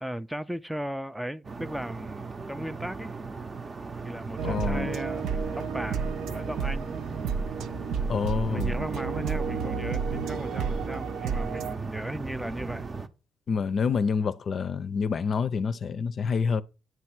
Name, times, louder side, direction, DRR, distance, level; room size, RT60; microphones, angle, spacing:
voice 1, 0.0-3.1 4.0-6.9 8.5-12.8, right 1 dB, 5° right, 0.4 m, -36 dB
sound 1, 1.4-13.1, right 4 dB, 35° right, 0.7 m, -38 dB
voice 2, 4.4-4.9 8.1-8.7 13.5-16.6, left 5 dB, 50° left, 0.5 m, -27 dB
sound 2, 4.4-11.8, right 5 dB, 85° right, 0.5 m, -31 dB
9.2 x 3.2 x 5.9 m
cardioid pair, 90°, 0 cm